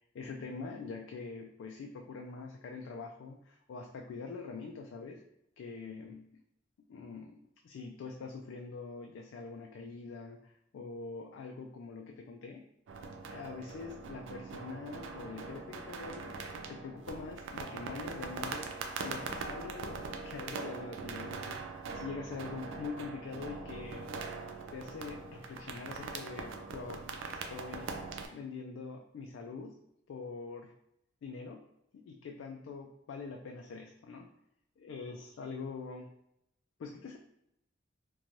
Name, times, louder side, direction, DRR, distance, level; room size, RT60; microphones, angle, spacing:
voice 1, 0.1-5.2 5.6-6.3 6.9-12.6 13.3-16.4 16.6-18.7 19.0-24.1 24.7-27.9 28.3-29.7 30.1-30.7 31.2-31.6 31.9-34.3 34.8-36.1 36.8-37.2, left 4 dB, 85° left, 2 dB, 0.3 m, -44 dB
sound 1, 12.9-28.3, right 4 dB, 90° right, 0.3 m, -42 dB
2.6 x 2.2 x 3.0 m, 0.78 s
head